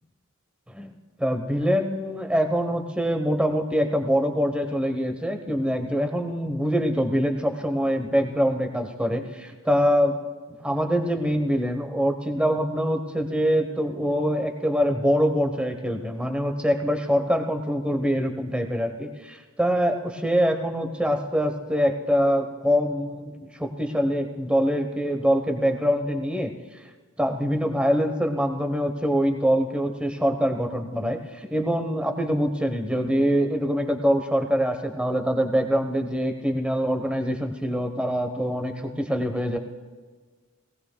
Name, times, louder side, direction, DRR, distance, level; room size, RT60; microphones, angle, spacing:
voice 1, 1.2-10.2 10.6-26.5 27.2-39.6, equal, 5° right, 6 dB, 1.0 m, -24 dB
19.5 x 17.5 x 2.3 m, 1.4 s
head